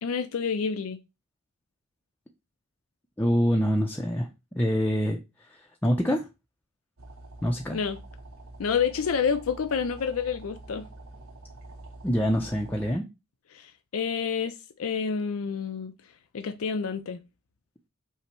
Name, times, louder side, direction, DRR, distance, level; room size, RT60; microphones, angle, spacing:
voice 1, 0.0-1.0 7.7-8.0 8.6-10.8 13.5-15.9 16.3-17.2, left 6 dB, 90° left, 0.4 m, -29 dB
voice 2, 3.2-4.3 4.5-5.2 5.5-6.3 7.4-7.8 12.0-13.0, equal, 10° left, 0.4 m, -25 dB
sound 1, 7.0-13.0, right 2 dB, 80° right, 0.8 m, -46 dB
5.7 x 2.1 x 4.4 m
head